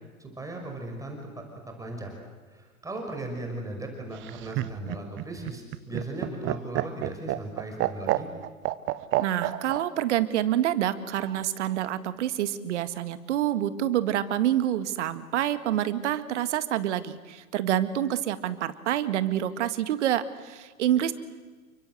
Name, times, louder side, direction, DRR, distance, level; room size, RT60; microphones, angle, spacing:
voice 1, 0.2-1.4 1.8-2.2 2.5-8.3, right 1 dB, 10° right, 2 dB, 5.7 m, -37 dB
Laughter, 4.1-9.8 11.1-11.8, right 17 dB, 30° right, 1.2 m, -29 dB
voice 2, 9.2-21.1, right 11 dB, 55° right, 11 dB, 2.1 m, -27 dB
29.5 x 25.0 x 7.9 m, 1.4 s
figure-of-eight pair, 105°, 42 cm